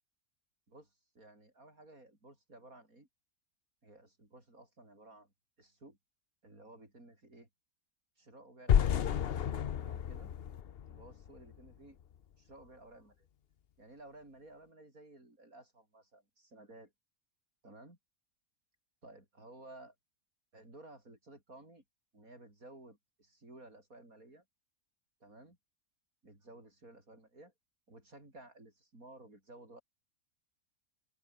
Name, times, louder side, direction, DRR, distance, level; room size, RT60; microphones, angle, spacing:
voice 1, 0.7-3.1 3.8-5.3 5.6-6.0 6.4-7.5 8.2-9.3 9.8-10.3 10.9-12.0 12.4-13.3 13.8-16.9 17.6-18.0 19.0-20.0 20.5-21.8 22.1-24.4 25.2-25.6 26.2-27.5 27.9-29.8, right 2 dB, 70° right, 7.7 m, -55 dB
sound 1, 8.7-11.7, left 9 dB, 50° left, 0.8 m, -31 dB
open air
omnidirectional pair, 1.5 m